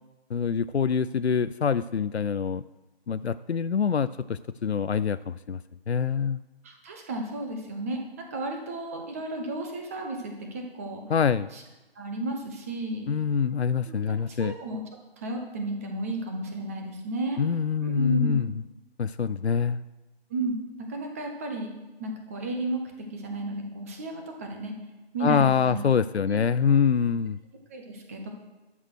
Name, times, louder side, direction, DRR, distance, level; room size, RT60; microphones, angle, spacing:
voice 1, 0.3-2.6 3.1-5.6 5.9-6.4 11.1-11.5 13.1-14.5 17.4-18.5 19.0-19.8 25.2-27.4, left 6 dB, 90° left, 14 dB, 0.5 m, -25 dB
voice 2, 6.6-11.0 11.5-11.6 11.9-13.1 13.9-14.1 14.4-14.8 15.2-17.4 17.8-18.5 20.3-20.6 20.9-21.7 22.0-24.7 25.1-25.8 26.3-26.4 27.7-28.3, right 2 dB, 15° right, 3 dB, 0.9 m, -33 dB
13.0 x 6.4 x 6.2 m, 1.1 s
figure-of-eight pair, 150°, 31 cm